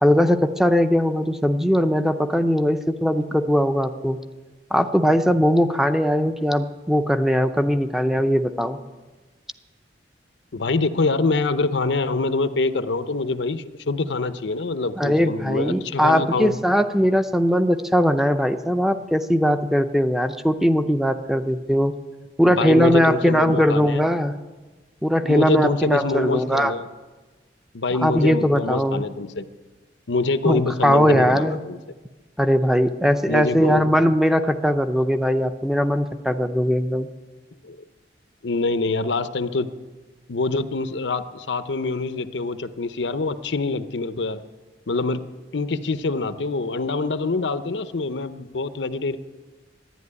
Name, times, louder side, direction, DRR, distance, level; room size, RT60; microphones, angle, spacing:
voice 1, 0.0-4.2 4.7-8.8 15.0-21.9 22.4-24.4 25.0-26.7 27.9-29.1 30.4-31.6 32.4-37.1, equal, ahead, 9 dB, 0.6 m, -20 dB
voice 2, 10.5-16.6 22.4-24.0 25.2-26.9 27.7-29.4 30.1-31.8 33.3-33.9 37.6-37.8 38.4-39.7 40.3-44.4 44.9-45.3 45.5-49.2, left 3 dB, 85° left, 12 dB, 0.8 m, -25 dB
12.5 x 11.0 x 9.6 m, 1.3 s
head